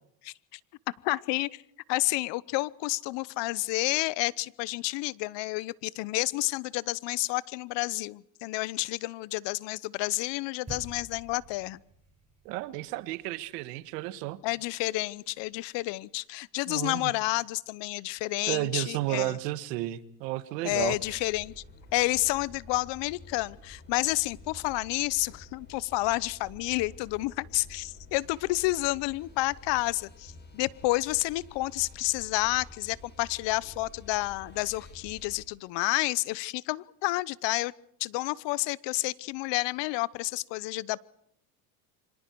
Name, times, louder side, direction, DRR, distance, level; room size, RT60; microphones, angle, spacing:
voice 1, 0.2-0.6 1.0-1.6 1.9-11.8 14.4-19.4 20.6-21.5 21.9-37.7 38.0-41.0, left 21 dB, 60° left, 0.9 m, -30 dB
sound 1, 10.7-15.2, right 3 dB, 15° right, 7.4 m, -50 dB
voice 2, 12.4-14.4 16.7-17.1 18.5-21.2, right 16 dB, 80° right, 1.6 m, -32 dB
sound 2, 20.7-35.4, left 2 dB, 20° left, 7.8 m, -50 dB
28.5 x 25.5 x 4.7 m
supercardioid pair, 100°, 48 cm